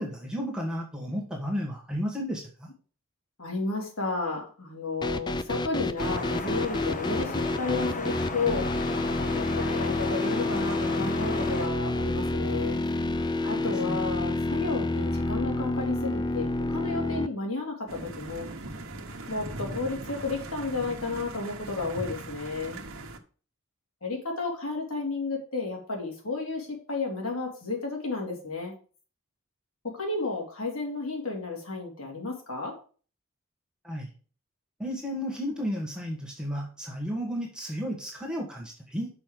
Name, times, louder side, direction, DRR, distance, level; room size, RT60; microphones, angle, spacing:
voice 1, 0.0-2.7 13.4-14.0 33.8-34.1 34.8-39.1, equal, 5° right, -1 dB, 1.5 m, -33 dB
voice 2, 3.4-8.7 9.2-12.8 13.4-18.5 19.3-22.8 24.0-28.7 29.8-32.7 35.4-35.5, left 3 dB, 80° left, 0 dB, 3.2 m, -32 dB
sound 1, 5.0-17.3, left 2 dB, 20° left, 0.5 m, -29 dB
sound 2, 6.0-11.7, left 3 dB, 40° left, 1.0 m, -35 dB
sound 3, 17.9-23.2, right 2 dB, 70° right, 1.2 m, -40 dB
6.2 x 5.5 x 6.7 m, 0.39 s
head